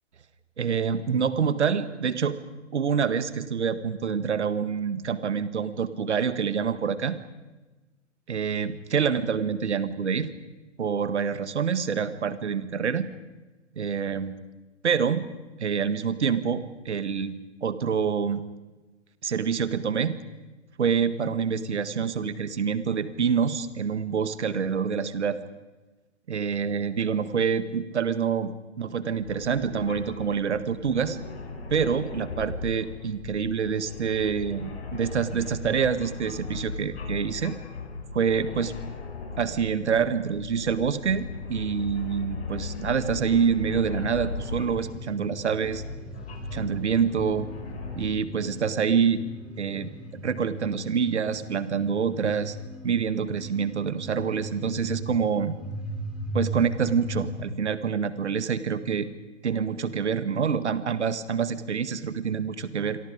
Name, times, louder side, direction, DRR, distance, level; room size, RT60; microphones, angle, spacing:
voice 1, 0.6-2.4 2.7-7.2 8.3-10.3 10.8-13.1 13.8-14.3 14.8-15.3 15.6-18.4 19.2-20.2 20.8-25.4 26.3-31.2 31.7-37.6 38.1-38.7 39.4-45.8 46.5-47.5 47.9-49.2 49.6-52.6 52.8-55.5 56.3-59.1 59.4-63.0, right 6 dB, 65° right, 13 dB, 1.8 m, -26 dB
sound 1, 29.2-45.0 45.6-48.0, left 4 dB, 55° left, 6.5 m, -38 dB
sound 2, 44.4-57.5, equal, 5° right, 4.3 m, -38 dB
28.0 x 24.0 x 5.1 m, 1.2 s
figure-of-eight pair, 125°, 36 cm